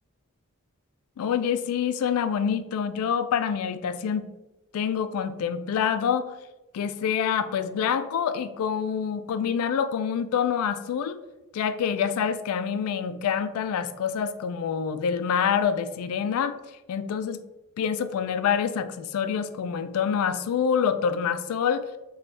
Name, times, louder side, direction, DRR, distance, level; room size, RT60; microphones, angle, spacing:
voice 1, 1.2-4.3 4.7-6.4 6.7-11.2 11.5-16.5 16.9-17.4 17.8-21.9, left 7 dB, 80° left, 14 dB, 0.3 m, -26 dB
3.1 x 2.3 x 4.1 m, 1.0 s
head